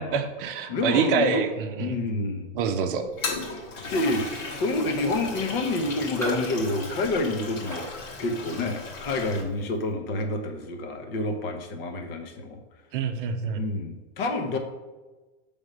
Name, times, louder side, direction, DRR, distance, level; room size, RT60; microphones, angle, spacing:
voice 1, 0.0-2.0 2.5-3.0 12.9-13.6, right 6 dB, 50° right, 7 dB, 0.6 m, -26 dB
voice 2, 0.7-1.5 1.8-2.5 3.9-12.6 13.5-14.6, left 2 dB, 50° left, 4 dB, 1.0 m, -28 dB
Toilet flush, 3.0-9.4, left 3 dB, 85° left, 2.0 m, -36 dB
Raindrop, 4.3-4.7 4.9-5.0 5.4-9.0 9.4-9.7, right 1 dB, 10° left, 1.0 m, -38 dB
6.3 x 3.5 x 5.2 m, 1.2 s
supercardioid pair, 165°, 36 cm